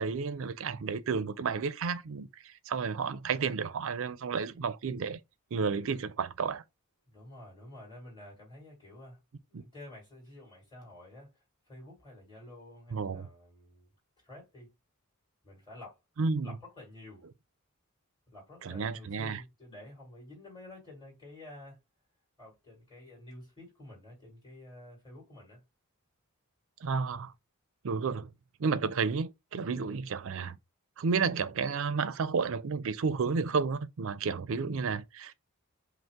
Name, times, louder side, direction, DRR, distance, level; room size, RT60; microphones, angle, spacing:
voice 1, 0.0-5.2 5.5-6.6 9.5-9.6 12.9-13.3 16.2-16.5 18.6-19.4 26.8-27.3 27.8-28.3 28.6-30.6 31.0-35.3, right 5 dB, 60° right, 0.4 m, -31 dB
voice 2, 7.1-9.2 9.5-13.9 14.2-14.7 15.4-16.0 16.4-17.3 18.3-21.8 22.4-25.6, left 1 dB, 20° left, 2.5 m, -50 dB
5.2 x 2.0 x 3.5 m
head